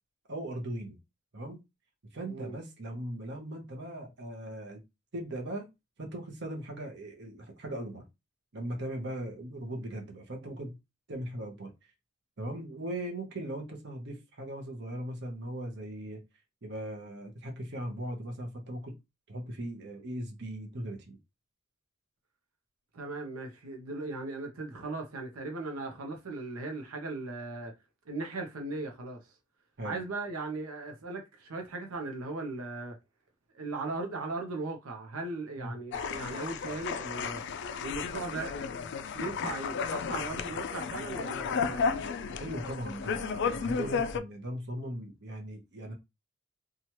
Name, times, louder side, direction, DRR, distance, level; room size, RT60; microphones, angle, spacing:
voice 1, 0.3-1.0 1.3-1.6 2.1-4.8 5.1-5.7 6.0-8.1 8.5-10.8 11.1-11.7 12.4-16.2 16.6-19.0 19.3-21.2 29.8-30.0 35.6-35.7 42.4-45.9, right 1 dB, 55° right, 0.8 m, -39 dB
voice 2, 22.9-27.7 28.1-29.3 29.8-32.9 33.5-37.4 37.8-38.6 39.1-42.2, right 3 dB, 85° right, 0.7 m, -38 dB
sound 1, 35.9-44.2, left 5 dB, 55° left, 0.3 m, -33 dB
2.9 x 2.3 x 2.9 m
head